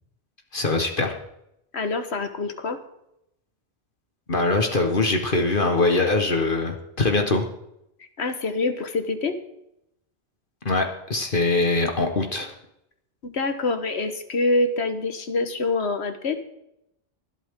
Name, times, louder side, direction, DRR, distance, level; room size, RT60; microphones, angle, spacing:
voice 1, 0.5-1.2 4.3-7.5 10.6-12.5, left 3 dB, 50° left, 4 dB, 1.6 m, -22 dB
voice 2, 1.7-2.8 8.2-9.4 13.2-16.4, left 3 dB, 80° left, 8 dB, 1.6 m, -25 dB
20.0 x 11.5 x 3.7 m, 0.81 s
omnidirectional pair, 1.1 m